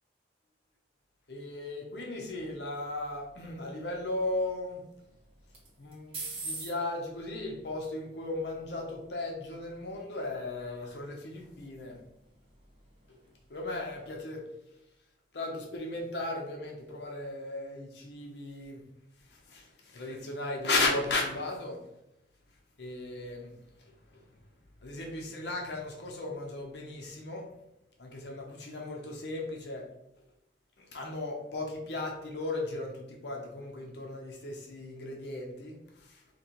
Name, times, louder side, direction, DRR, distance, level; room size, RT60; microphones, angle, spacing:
voice 1, 1.3-4.8 5.8-12.0 13.1-13.2 13.5-14.8 15.3-18.8 19.2-21.9 22.8-24.5 24.8-27.5 28.0-29.9 30.8-36.2, left 2 dB, 70° left, 0 dB, 0.8 m, -36 dB
sound 1, 2.3-14.2, right 3 dB, 35° right, 1.2 m, -49 dB
4.1 x 3.0 x 2.9 m, 0.87 s
head